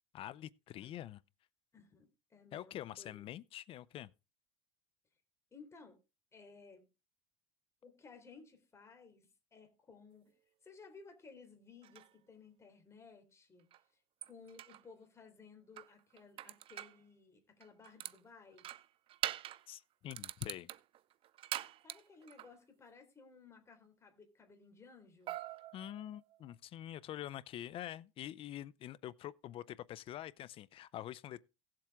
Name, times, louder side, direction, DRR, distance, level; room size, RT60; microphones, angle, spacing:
voice 1, 0.1-1.2 2.5-4.1 19.7-20.7 25.7-31.4, left 12 dB, 40° left, 0.5 m, -46 dB
voice 2, 1.7-3.2 5.5-6.0 6.3-6.9 7.8-10.3 10.6-13.7 13.9-14.0 14.3-18.7 21.8-25.4, left 4 dB, 20° left, 3.5 m, -58 dB
sound 1, 11.8-12.1 13.7-13.8 14.2-14.8 15.8-17.0 17.6-18.2 18.6-19.7 20.1-22.5 25.3-26.5, right 13 dB, 40° right, 0.5 m, -44 dB
17.0 x 7.6 x 3.6 m
supercardioid pair, 130°, 15 cm